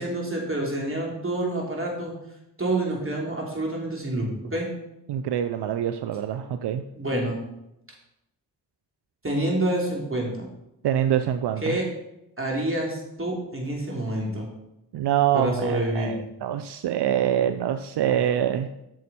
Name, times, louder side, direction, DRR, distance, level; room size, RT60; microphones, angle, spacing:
voice 1, 0.0-2.1 2.6-4.7 7.0-7.4 9.2-10.5 11.6-11.9 12.4-14.5 15.3-16.2, right 1 dB, 30° right, -1 dB, 3.1 m, -27 dB
voice 2, 5.1-6.8 10.8-11.8 14.9-18.7, right 10 dB, 80° right, 10 dB, 0.5 m, -25 dB
8.4 x 6.4 x 4.3 m, 0.86 s
cardioid pair, 45°, 40 cm